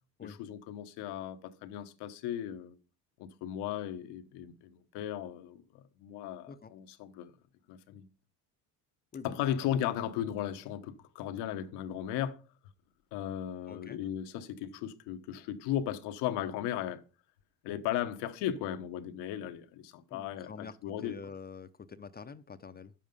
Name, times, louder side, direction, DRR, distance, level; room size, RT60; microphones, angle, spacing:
voice 1, 0.2-2.8 3.2-7.3 7.7-8.0 9.2-12.4 13.1-17.0 17.6-21.1, left 11 dB, 90° left, 1.2 m, -36 dB
voice 2, 13.7-14.0 20.1-22.9, left 5 dB, 25° left, 0.6 m, -46 dB
9.4 x 7.4 x 5.2 m
cardioid pair, 95°, 39 cm